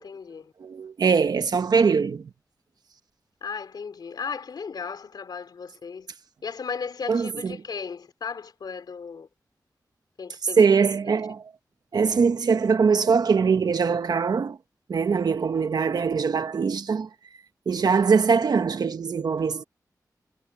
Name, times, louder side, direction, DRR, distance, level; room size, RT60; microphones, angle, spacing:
voice 1, 0.0-0.5 3.4-6.1 6.4-9.3 10.2-10.7, left 5 dB, 90° left, 3.6 m, -35 dB
voice 2, 0.6-2.3 7.1-7.6 10.6-11.4 11.9-14.6 14.9-17.1 17.7-19.6, right 5 dB, 75° right, 1.2 m, -22 dB
wide cardioid pair, 130°, 7 cm